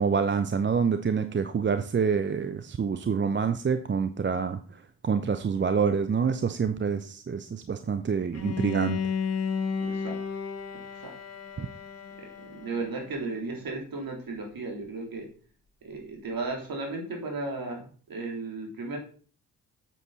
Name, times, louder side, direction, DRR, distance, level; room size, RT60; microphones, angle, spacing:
voice 1, 0.0-4.6 5.0-9.0 11.6-11.7, right 6 dB, 25° right, 10 dB, 0.7 m, -26 dB
Bowed string instrument, 8.3-13.3, left 6 dB, 35° left, 1.4 m, -33 dB
voice 2, 9.8-10.2 10.7-11.1 12.4-15.3 15.8-19.0, right 3 dB, 50° right, 1 dB, 3.4 m, -35 dB
8.0 x 7.6 x 4.1 m, 0.41 s
figure-of-eight pair, 40°, 46 cm